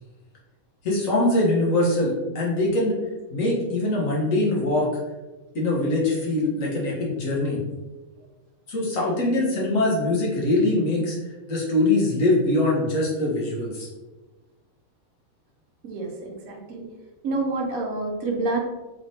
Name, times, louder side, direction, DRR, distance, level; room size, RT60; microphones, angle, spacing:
voice 1, 0.8-3.0 3.3-4.9 5.5-7.6 8.7-11.2 11.5-13.9, left 2 dB, 70° left, -4 dB, 1.6 m, -23 dB
voice 2, 15.8-16.9 17.2-18.6, right 3 dB, 80° right, 1 dB, 1.2 m, -28 dB
4.3 x 3.4 x 2.7 m, 1.2 s
omnidirectional pair, 1.5 m